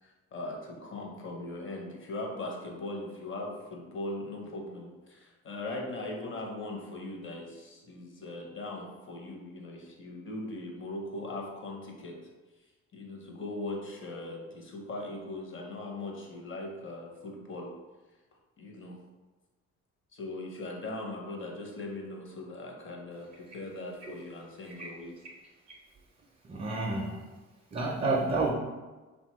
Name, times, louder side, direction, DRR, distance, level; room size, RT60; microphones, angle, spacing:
voice 1, 0.0-12.2 12.9-17.7 18.6-19.0 20.1-25.2, left 2 dB, 40° left, 0 dB, 0.7 m, -40 dB
voice 2, 26.5-27.2 27.7-28.5, right 3 dB, 25° right, -1 dB, 0.4 m, -29 dB
2.9 x 2.2 x 2.9 m, 1.2 s
cardioid pair, 90°, 30 cm